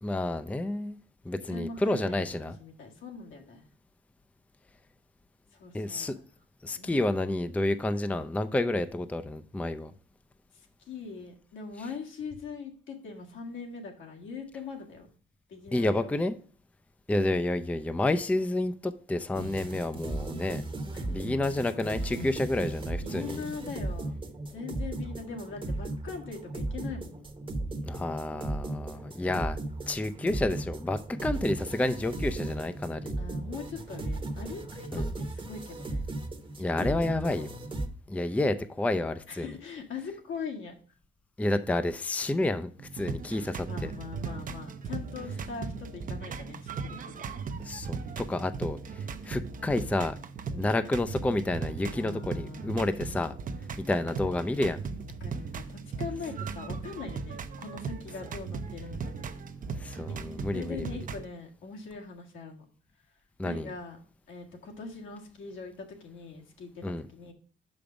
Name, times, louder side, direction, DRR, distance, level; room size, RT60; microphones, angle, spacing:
voice 1, 0.0-1.0 1.3-2.6 5.7-6.2 6.6-9.9 15.7-16.4 17.1-20.6 21.1-23.4 27.9-29.6 29.9-33.1 34.9-35.1 36.6-37.5 38.1-39.5 41.4-43.7 47.6-50.2 50.6-53.3 53.9-54.8 59.8-60.9 63.4-63.7 66.8-67.1, left 2 dB, 5° left, 0.4 m, -30 dB
voice 2, 1.3-3.6 5.5-6.2 6.8-6.9 10.5-15.1 15.5-16.2 20.9-21.2 22.0-22.5 23.0-24.1 24.5-27.2 33.2-36.0 36.8-37.1 37.3-37.5 39.3-40.7 43.6-47.4 50.5-50.7 51.9-52.8 55.2-59.0 60.1-60.2 60.5-62.6 63.4-64.0 64.3-67.3, left 5 dB, 75° left, 1.9 m, -41 dB
sound 1, 19.3-37.9, right 2 dB, 25° right, 1.0 m, -36 dB
sound 2, 42.8-61.2, right 5 dB, 45° right, 0.6 m, -38 dB
5.8 x 5.2 x 5.0 m
cardioid pair, 90°, 20 cm